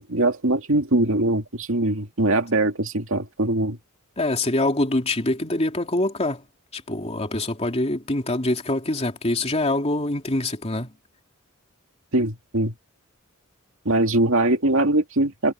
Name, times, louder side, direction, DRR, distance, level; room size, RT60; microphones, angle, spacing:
voice 1, 0.0-3.8 12.1-12.7 13.8-15.5, right 2 dB, 70° right, 2.5 m, -22 dB
voice 2, 4.2-6.4 6.7-10.9, left 2 dB, 30° left, 2.9 m, -24 dB
head